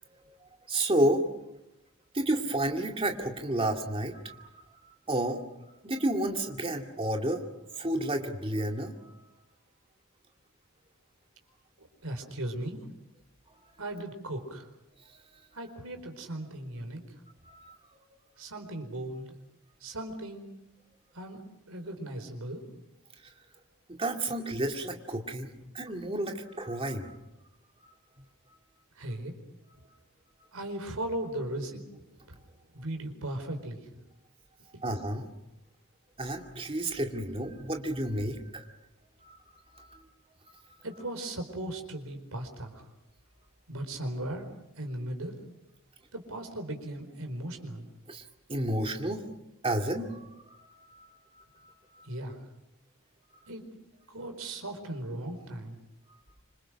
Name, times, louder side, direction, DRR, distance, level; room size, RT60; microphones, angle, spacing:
voice 1, 0.7-1.2 2.1-4.5 5.1-5.4 5.8-7.4 7.8-9.2 17.4-17.8 24.0-25.5 25.7-27.1 34.8-35.3 36.2-38.6 39.2-39.4 39.7-40.0 48.1-48.2 48.5-49.3 49.6-51.1 51.3-52.0, right 1 dB, 25° right, 3 dB, 2.4 m, -31 dB
voice 2, 11.8-12.9 13.8-14.7 15.5-17.1 18.4-19.4 19.8-20.5 21.1-21.4 21.7-22.6 28.9-29.3 30.5-32.4 32.7-33.8 40.8-42.9 43.7-44.5 44.8-45.4 46.1-47.9 52.0-52.4 53.5-53.6 54.1-55.8, right 1 dB, 80° right, 6 dB, 4.6 m, -37 dB
26.5 x 25.5 x 6.5 m, 0.90 s
head